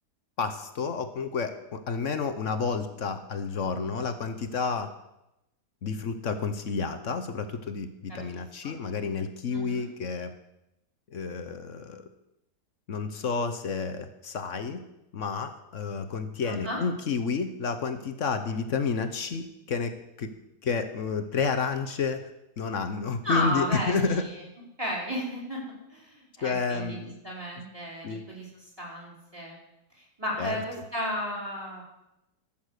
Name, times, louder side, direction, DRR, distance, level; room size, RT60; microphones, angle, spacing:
voice 1, 0.4-4.9 5.8-10.3 11.1-12.0 12.9-14.8 15.1-20.3 20.6-22.3 22.6-24.2 26.4-27.1 28.0-28.2 30.4-30.6, left 5 dB, 55° left, 8 dB, 1.1 m, -30 dB
voice 2, 8.1-8.7 9.5-9.9 16.4-16.8 23.2-24.5 24.8-29.6 29.9-31.8, equal, 15° right, -4 dB, 4.7 m, -34 dB
14.5 x 7.3 x 6.5 m, 0.90 s
omnidirectional pair, 1.8 m